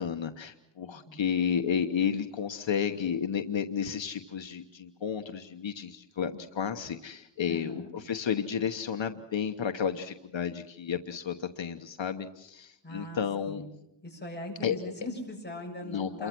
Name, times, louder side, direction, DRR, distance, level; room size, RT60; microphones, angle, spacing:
voice 1, 0.0-13.6 14.6-14.8 15.8-16.3, left 7 dB, 75° left, 6 dB, 1.2 m, -32 dB
voice 2, 0.8-1.3 7.4-7.9 12.8-13.7 14.0-16.3, left 1 dB, 20° left, 0 dB, 7.4 m, -41 dB
28.5 x 23.5 x 6.1 m, 0.81 s
wide cardioid pair, 120°, 46 cm